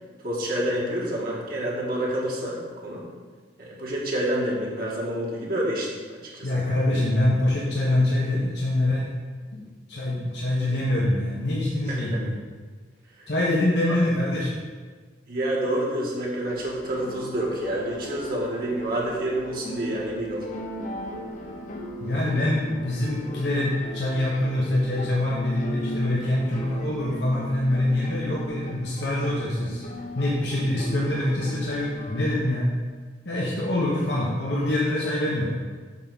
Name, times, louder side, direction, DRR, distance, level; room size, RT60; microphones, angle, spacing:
voice 1, 0.2-3.0 3.6-6.5 11.9-12.0 13.2-13.3 13.9-14.0 15.3-20.5, right 1 dB, 55° right, -4 dB, 1.6 m, -28 dB
voice 2, 6.4-9.1 9.5-12.4 13.3-14.5 22.0-29.8 30.1-32.7 33.2-35.5, left 1 dB, 75° left, -5 dB, 1.2 m, -25 dB
sound 1, 16.5-32.4, equal, 45° left, 0.8 m, -37 dB
7.6 x 3.8 x 6.1 m, 1.5 s
head